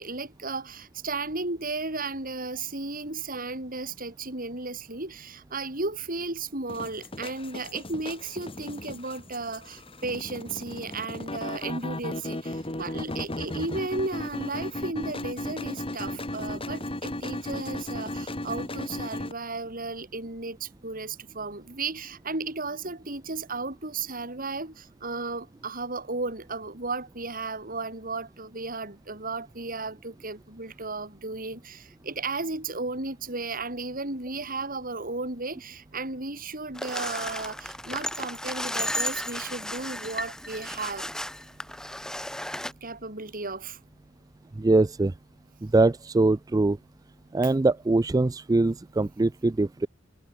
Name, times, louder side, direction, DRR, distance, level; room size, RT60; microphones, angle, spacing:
voice 1, 0.0-41.1 42.8-43.8, right 3 dB, 45° right, 5.7 m, -34 dB
sound 1, 6.7-19.3, left 1 dB, 25° left, 2.8 m, -35 dB
sound 2, 36.8-42.7, left 1 dB, 5° left, 0.9 m, -34 dB
voice 2, 44.6-45.1 45.6-46.8 47.3-49.9, right 2 dB, 20° right, 0.4 m, -22 dB
head